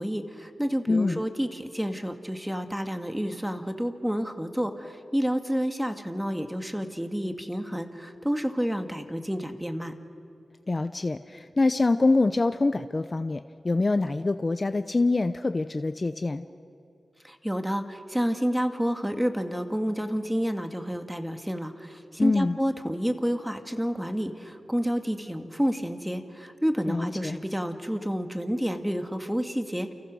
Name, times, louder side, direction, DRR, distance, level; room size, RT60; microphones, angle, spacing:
voice 1, 0.0-9.9 17.2-29.9, equal, 5° right, 6 dB, 1.9 m, -29 dB
voice 2, 0.9-1.2 10.7-16.4 22.2-22.6 26.9-27.4, left 3 dB, 35° left, 10 dB, 0.7 m, -25 dB
30.0 x 29.0 x 6.3 m, 2.6 s
wide cardioid pair, 100°, 0 cm